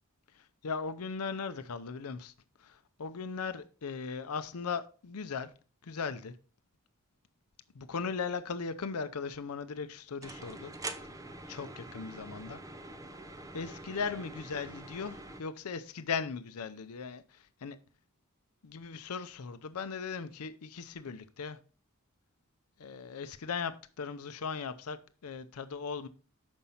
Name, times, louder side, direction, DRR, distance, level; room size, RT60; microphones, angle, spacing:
voice 1, 0.3-2.3 2.6-5.5 5.8-6.4 7.7-10.7 11.0-11.1 11.5-12.6 13.5-17.8 18.6-21.6 22.8-26.1, left 5 dB, 75° left, 0.6 m, -38 dB
sound 1, 10.2-15.4, right 2 dB, 15° right, 0.7 m, -45 dB
7.1 x 5.3 x 5.6 m
head